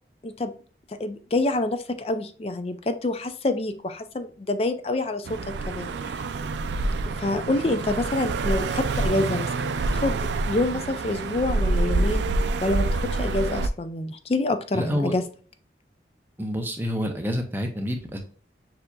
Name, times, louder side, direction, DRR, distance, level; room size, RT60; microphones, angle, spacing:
voice 1, 0.9-5.4 5.7-6.2 7.2-10.2 10.5-12.3 12.6-15.3, left 2 dB, 35° left, 10 dB, 0.4 m, -27 dB
sound 1, 5.3-13.7, right 3 dB, 80° right, 0.4 m, -27 dB
voice 2, 14.7-15.1 16.4-18.2, equal, 10° right, 3 dB, 0.6 m, -28 dB
6.6 x 2.8 x 2.3 m, 0.42 s
head